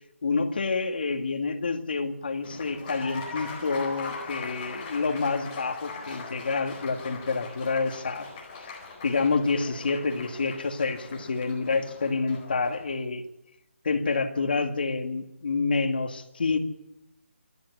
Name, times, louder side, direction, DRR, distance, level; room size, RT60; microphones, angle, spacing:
voice 1, 0.2-8.3 9.0-13.2 13.8-16.6, left 4 dB, 45° left, 5 dB, 2.2 m, -28 dB
Applause, 2.4-12.8, left 4 dB, 15° left, 4.3 m, -41 dB
26.5 x 11.0 x 10.0 m, 0.91 s
hypercardioid pair, 175°, 7 cm